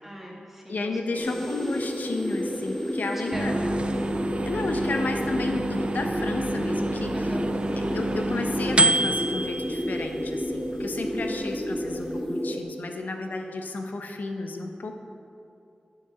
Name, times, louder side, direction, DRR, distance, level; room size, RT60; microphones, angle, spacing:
voice 1, 0.0-1.4 3.1-3.9 7.1-7.5 11.1-11.5, equal, 10° right, -3 dB, 2.1 m, -40 dB
voice 2, 0.7-3.5 4.5-7.1 7.7-15.0, left 3 dB, 75° left, 4 dB, 0.8 m, -32 dB
sound 1, 1.2-12.6, equal, 10° left, 1.4 m, -31 dB
sound 2, 3.3-12.2, right 2 dB, 40° right, 0.4 m, -29 dB
9.8 x 4.8 x 5.6 m, 2.6 s
cardioid pair, 45°, 3 cm